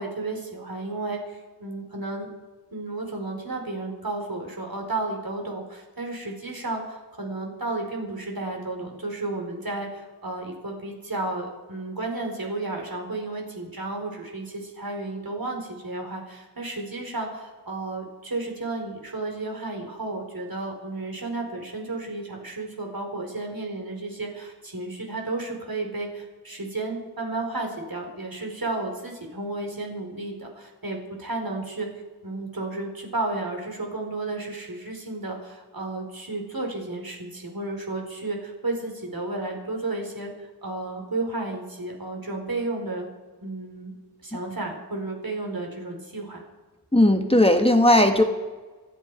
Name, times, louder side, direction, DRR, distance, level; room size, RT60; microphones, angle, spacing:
voice 1, 0.0-2.3 2.7-31.9 32.2-43.1 43.4-43.9 44.2-46.4, right 2 dB, 60° right, 1 dB, 4.6 m, -32 dB
voice 2, 46.9-48.2, left 1 dB, 15° left, 5 dB, 1.3 m, -17 dB
27.0 x 10.5 x 4.9 m, 1.3 s
wide cardioid pair, 55°, 40 cm